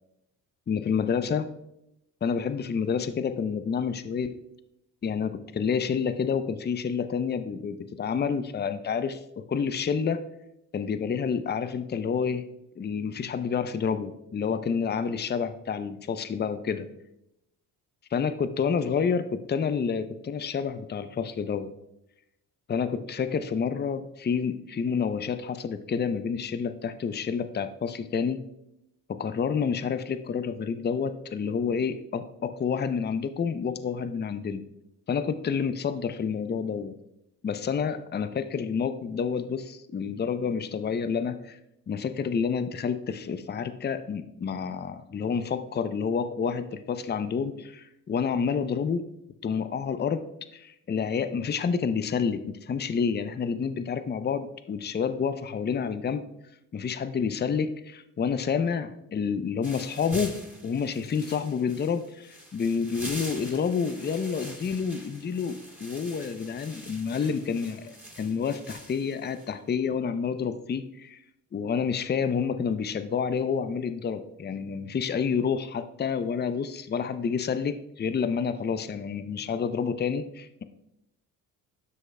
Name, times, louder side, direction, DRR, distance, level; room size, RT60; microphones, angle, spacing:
voice 1, 0.7-1.5 2.2-4.3 5.0-10.2 10.7-12.4 12.8-16.9 18.1-21.7 22.7-28.5 29.1-34.6 35.1-36.9 37.4-41.6 41.9-49.1 49.4-50.3 50.5-56.3 56.7-60.4 60.6-71.2 71.5-80.6, left 6 dB, 20° left, 11 dB, 0.6 m, -29 dB
sound 1, 59.6-69.5, right 1 dB, 5° right, 2.3 m, -44 dB
12.5 x 6.3 x 2.2 m, 0.84 s
hypercardioid pair, 55°, 47 cm